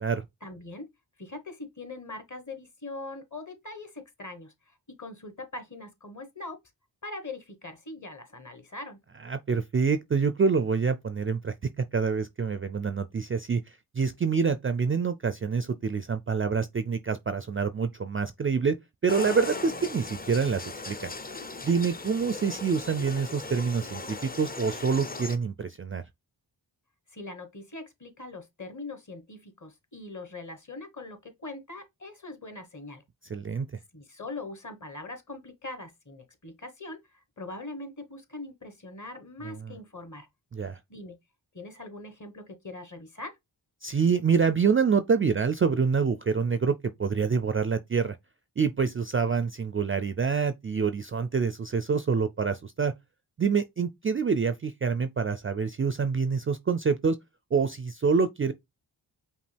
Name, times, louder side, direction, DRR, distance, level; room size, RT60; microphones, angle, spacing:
voice 1, 0.4-0.9 1.2-4.5 4.9-6.6 7.0-9.0 27.1-33.0 33.9-37.0 37.4-40.3 40.9-41.2 41.5-43.3, left 2 dB, 40° left, 1.3 m, -41 dB
voice 2, 9.2-13.6 13.9-18.7 19.0-21.1 21.6-26.0 33.2-33.7 39.4-39.8 40.5-40.8 43.8-48.2 48.6-52.9 53.4-57.2 57.5-58.5, right 5 dB, 30° right, 0.4 m, -26 dB
sound 1, 19.1-25.4, left 3 dB, 20° left, 0.5 m, -38 dB
5.2 x 2.4 x 3.3 m
cardioid pair, 50°, 46 cm